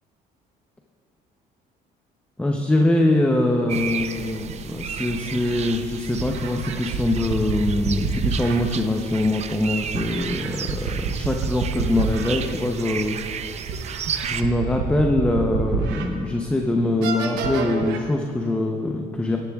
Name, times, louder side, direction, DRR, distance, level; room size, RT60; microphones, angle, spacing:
voice 1, 2.4-13.2 14.3-19.4, left 1 dB, 5° left, 2 dB, 0.7 m, -23 dB
sound 1, 3.7-14.4, right 7 dB, 40° right, 0.6 m, -33 dB
sound 2, 5.5-5.6 6.2-8.6 9.9-12.3 12.8-12.9 13.7-16.1 16.5-16.6 17.0-18.0, right 5 dB, 90° right, 1.0 m, -27 dB
17.5 x 10.5 x 2.4 m, 2.5 s
cardioid pair, 110°, 17 cm